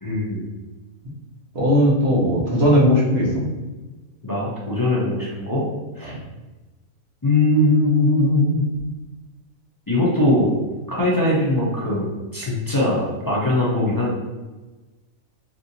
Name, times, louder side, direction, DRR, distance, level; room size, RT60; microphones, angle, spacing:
voice 1, 0.0-0.5 4.2-5.6 6.0-6.1 7.2-8.6 9.9-10.6 10.9-14.1, left 1 dB, 30° left, -6 dB, 0.4 m, -20 dB
voice 2, 1.5-3.5, equal, 55° right, -5 dB, 1.1 m, -17 dB
3.4 x 2.7 x 2.7 m, 1.2 s
omnidirectional pair, 1.4 m